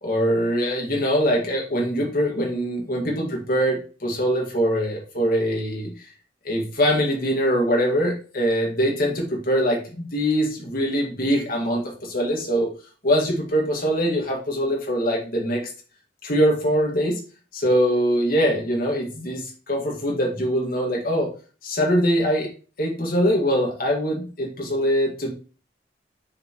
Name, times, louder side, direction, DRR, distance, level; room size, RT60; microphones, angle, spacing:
voice 1, 0.0-6.1 6.4-12.7 13.0-15.6 16.2-17.2 17.5-21.3 21.6-22.5 22.8-25.3, equal, 55° left, -1 dB, 1.9 m, -23 dB
7.3 x 4.7 x 3.0 m, 0.36 s
head